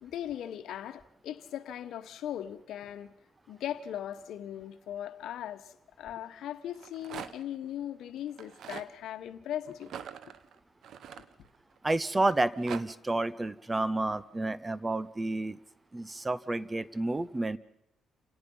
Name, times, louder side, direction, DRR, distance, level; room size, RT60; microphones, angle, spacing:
voice 1, 0.0-3.1 3.5-9.9, left 11 dB, 75° left, 1.2 m, -39 dB
Rattle, 6.6-7.6 8.3-8.9 9.8-11.8 12.3-12.8, right 8 dB, 70° right, 1.0 m, -43 dB
voice 2, 11.8-15.6 15.9-17.6, right 2 dB, 20° right, 0.8 m, -30 dB
28.5 x 17.5 x 5.6 m
cardioid pair, 90°, 0 cm